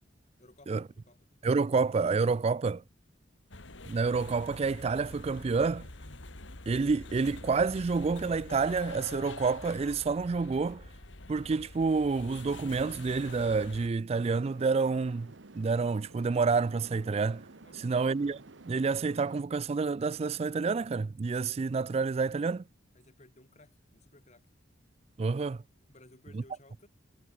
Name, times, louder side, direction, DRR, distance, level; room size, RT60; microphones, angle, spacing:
voice 1, 0.4-1.3 17.6-18.0 22.9-24.5 25.9-26.9, left 1 dB, 35° left, 4.8 m, -58 dB
voice 2, 1.4-2.8 3.9-5.9 6.7-10.9 11.3-17.4 17.8-18.4 18.7-22.6 25.2-25.6, right 4 dB, 35° right, 0.3 m, -28 dB
sound 1, 3.5-13.9, left 2 dB, 75° left, 2.9 m, -46 dB
sound 2, 14.1-19.4, right 2 dB, 75° right, 1.3 m, -52 dB
head